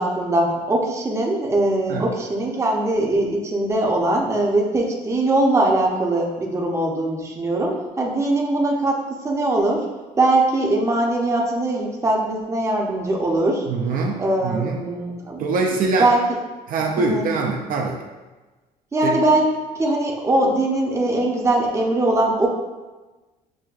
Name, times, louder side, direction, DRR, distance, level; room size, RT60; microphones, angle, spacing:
voice 1, 0.0-9.9 10.2-13.7 14.2-16.4 16.8-17.3 18.9-19.4 19.7-22.5, right 2 dB, 15° right, -1 dB, 0.6 m, -21 dB
voice 2, 13.7-14.8 15.4-16.1 16.7-18.0 19.0-19.2, right 3 dB, 55° right, 0 dB, 0.5 m, -23 dB
6.0 x 2.2 x 2.4 m, 1.2 s
cardioid pair, 110°, 17 cm